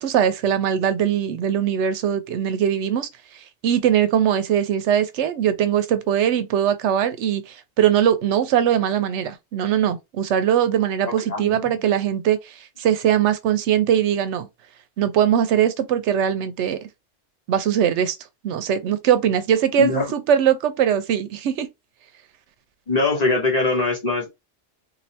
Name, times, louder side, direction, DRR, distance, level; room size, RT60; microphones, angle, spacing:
voice 1, 0.0-3.1 3.6-14.5 15.0-16.9 17.5-18.2 18.4-21.7, right 9 dB, 85° right, 0.9 m, -21 dB
voice 2, 11.0-11.8 19.8-20.1 22.9-24.3, left 3 dB, 40° left, 0.9 m, -22 dB
3.1 x 2.6 x 2.7 m
omnidirectional pair, 1.2 m